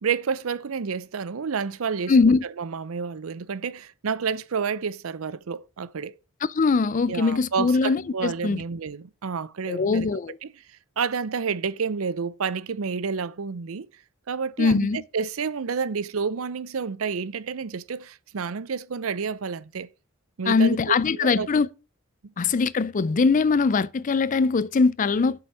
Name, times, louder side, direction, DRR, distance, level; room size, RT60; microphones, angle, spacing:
voice 1, 0.0-2.1 2.6-6.1 7.1-10.1 10.4-10.5 11.0-13.9 14.3-14.9 15.1-19.9 20.4-21.5 22.2-22.3, right 5 dB, 85° right, 0.6 m, -29 dB
voice 2, 2.1-2.4 6.4-8.6 9.7-10.4 14.6-15.0 20.5-21.7 22.4-25.4, left 4 dB, 40° left, 0.4 m, -21 dB
7.9 x 6.9 x 6.1 m
head